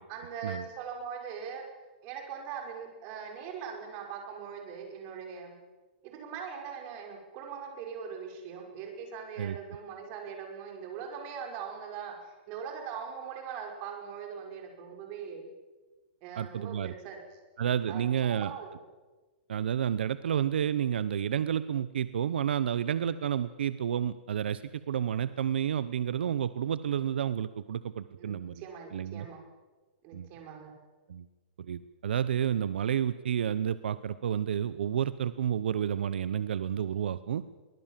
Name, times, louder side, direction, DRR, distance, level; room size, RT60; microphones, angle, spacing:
voice 1, 0.1-1.6 2.0-5.5 6.0-15.5 16.2-17.2 17.9-18.0 18.3-18.7 28.2-29.4 30.0-30.7, right 7 dB, 35° right, 2 dB, 5.7 m, -41 dB
voice 2, 16.4-16.9 17.6-18.5 19.5-28.6 28.9-29.3 30.1-30.3 31.1-31.3 31.6-37.4, right 9 dB, 85° right, 15 dB, 0.9 m, -30 dB
23.5 x 20.5 x 7.5 m, 1.3 s
hypercardioid pair, 160°, 6 cm